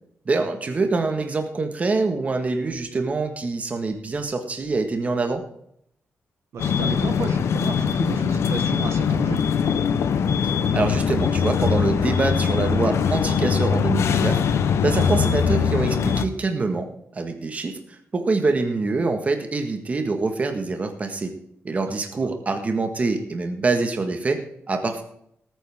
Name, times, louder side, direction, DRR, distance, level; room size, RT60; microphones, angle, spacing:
voice 1, 0.2-5.4 10.4-14.4 14.8-21.3 21.6-25.0, right 3 dB, 30° right, 5 dB, 1.6 m, -25 dB
voice 2, 6.5-9.4 15.0-15.1 21.9-22.3, right 4 dB, 80° right, 7 dB, 1.5 m, -33 dB
sound 1, 6.6-16.3, left 7 dB, 90° left, 0.9 m, -22 dB
18.5 x 9.3 x 3.7 m, 0.71 s
wide cardioid pair, 155°, 5 cm